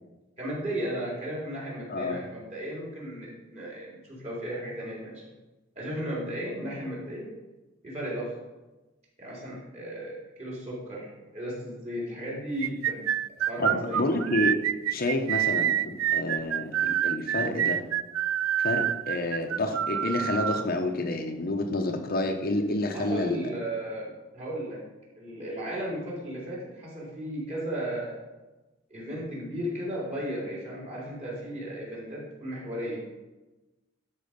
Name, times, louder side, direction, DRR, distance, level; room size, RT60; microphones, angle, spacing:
voice 1, 0.4-5.2 5.8-7.3 7.8-8.3 9.2-11.1 11.3-13.1 13.5-14.1 22.9-24.8 25.2-28.2 28.9-33.0, equal, 35° right, -5 dB, 3.8 m, -35 dB
voice 2, 1.9-2.2 13.6-14.6 14.9-17.8 18.6-23.5, left 2 dB, 50° left, 4 dB, 0.9 m, -29 dB
sound 1, 12.6-20.6, right 10 dB, 80° right, 0.3 m, -27 dB
12.0 x 5.1 x 5.2 m, 1.1 s
head